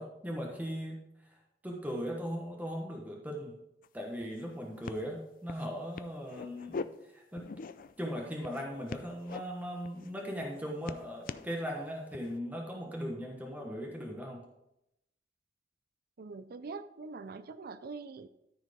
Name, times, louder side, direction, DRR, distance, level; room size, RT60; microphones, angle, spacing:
voice 1, 0.0-3.6 3.9-7.5 8.0-14.5, equal, 10° right, 0 dB, 1.3 m, -39 dB
sound 1, 3.8-3.9 4.2-4.5 4.8-5.0 5.5-5.7 6.0-6.8 7.4-8.0 8.4-9.4 9.8-10.1 10.4-11.5 12.1-12.4, left 4 dB, 50° left, 0.4 m, -42 dB
voice 2, 16.2-18.3, right 4 dB, 55° right, 12 dB, 0.5 m, -43 dB
13.5 x 4.6 x 5.2 m, 0.85 s
head